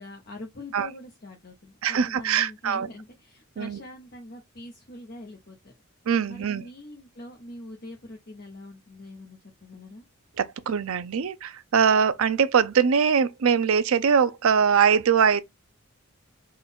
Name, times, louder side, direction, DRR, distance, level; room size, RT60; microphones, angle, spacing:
voice 1, 0.0-5.7 6.3-10.0, left 1 dB, 45° left, 0.8 m, -43 dB
voice 2, 1.8-2.9 3.6-3.8 6.1-6.6 10.4-15.4, right 7 dB, 75° right, 0.4 m, -22 dB
3.8 x 2.3 x 4.2 m
head